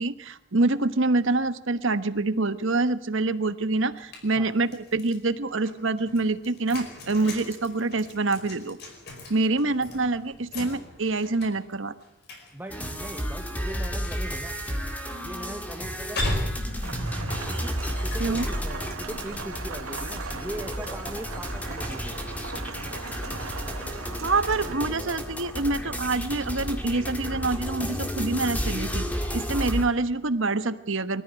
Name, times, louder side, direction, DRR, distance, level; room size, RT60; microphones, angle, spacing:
voice 1, 0.0-8.8 9.3-11.9 18.2-18.5 24.2-29.0 29.3-31.2, right 3 dB, 65° right, 12 dB, 1.2 m, -26 dB
sound 1, 3.9-5.2 5.6-18.5, left 1 dB, 50° left, 5.2 m, -38 dB
voice 2, 9.8-10.2 12.5-14.6 15.2-16.6 17.5-17.8 18.0-22.3, right 1 dB, 10° right, 5 dB, 0.8 m, -40 dB
sound 2, 12.7-29.9, equal, 5° left, 2.0 m, -32 dB
Rain, 16.8-24.7, right 4 dB, 90° right, 2.1 m, -39 dB
24.0 x 14.5 x 9.7 m, 0.83 s
head